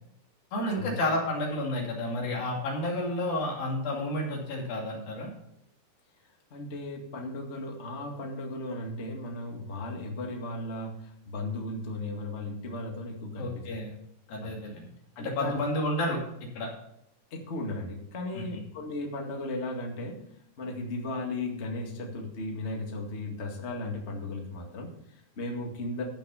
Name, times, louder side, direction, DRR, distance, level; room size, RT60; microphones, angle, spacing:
voice 1, 0.5-5.3 13.4-13.9 14.3-14.9 15.2-16.2 16.6-16.7 18.5-18.6, left 1 dB, 60° left, -1 dB, 4.2 m, -30 dB
voice 2, 6.5-13.7 14.4-14.6 15.1-15.7 17.3-20.2 20.6-26.0, left 2 dB, 85° left, 1 dB, 0.6 m, -36 dB
13.5 x 6.1 x 5.6 m, 0.74 s
omnidirectional pair, 4.8 m